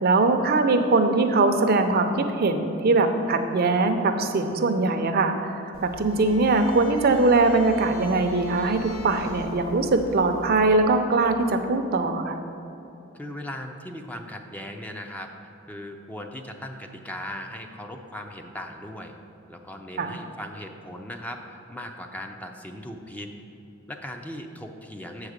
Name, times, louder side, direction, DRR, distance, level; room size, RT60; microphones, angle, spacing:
voice 1, 0.0-12.4 20.0-20.2, right 3 dB, 50° right, 7 dB, 0.5 m, -22 dB
sound 1, 5.7-10.8, left 1 dB, 85° left, 0.8 m, -42 dB
voice 2, 13.1-19.2 19.5-23.3 23.9-25.3, left 1 dB, 10° left, 3 dB, 0.4 m, -38 dB
7.3 x 4.8 x 6.5 m, 2.8 s
head